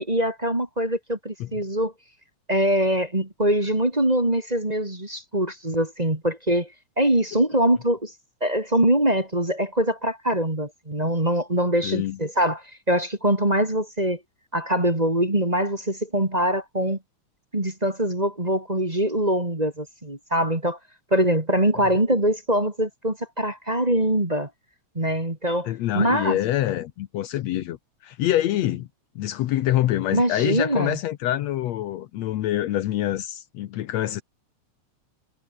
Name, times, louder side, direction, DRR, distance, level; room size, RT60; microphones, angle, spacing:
voice 1, 0.0-1.9 2.5-6.7 7.0-8.1 8.4-14.2 14.5-17.0 17.5-20.8 21.1-24.5 24.9-26.4 30.1-31.0, right 1 dB, 15° right, 2.6 m, -23 dB
voice 2, 11.8-12.2 25.7-27.8 28.0-28.9 29.2-34.2, left 13 dB, 70° left, 2.0 m, -25 dB
omnidirectional pair, 3.3 m